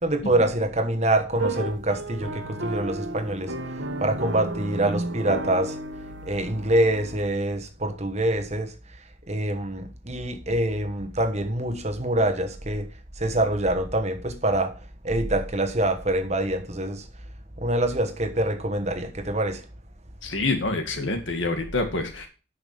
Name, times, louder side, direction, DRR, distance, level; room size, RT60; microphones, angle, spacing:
voice 1, 0.0-3.5 4.0-5.8 6.2-8.7 9.3-12.9 13.2-14.8 15.0-17.0 17.6-19.6, right 1 dB, 35° right, 1.2 m, -25 dB
sound 1, 1.3-7.2, right 2 dB, 75° right, 1.4 m, -32 dB
voice 2, 20.2-22.3, left 2 dB, 75° left, 2.1 m, -27 dB
9.3 x 6.1 x 5.0 m
head